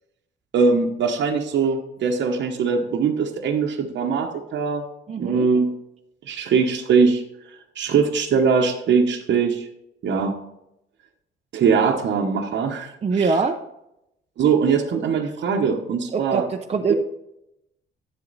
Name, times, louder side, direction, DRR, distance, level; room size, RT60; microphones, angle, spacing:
voice 1, 0.5-4.8 5.2-5.7 6.3-7.2 7.8-9.7 10.0-10.4 11.5-13.4 14.4-16.5 16.9-17.0, right 5 dB, 65° right, 1 dB, 1.1 m, -21 dB
voice 2, 5.1-5.5 13.0-13.6 16.1-16.9, right 4 dB, 30° right, 3 dB, 0.7 m, -23 dB
10.5 x 7.7 x 4.1 m, 0.85 s
cardioid pair, 90°, 20 cm